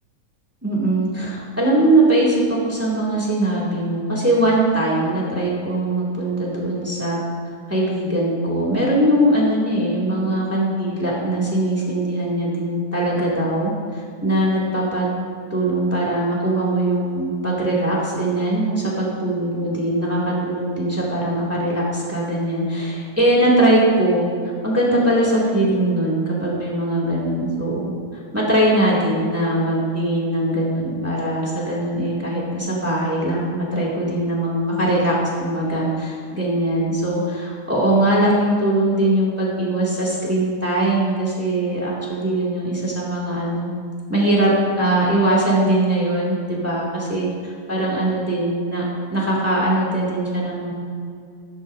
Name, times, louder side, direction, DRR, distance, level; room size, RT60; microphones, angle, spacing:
voice 1, 0.6-7.2 7.7-15.1 15.5-24.3 24.6-43.7 44.1-44.5 44.8-47.3 47.7-48.8 49.1-50.7, right 1 dB, 5° right, -5 dB, 2.0 m, -21 dB
13.5 x 12.5 x 2.7 m, 2.2 s
omnidirectional pair, 3.3 m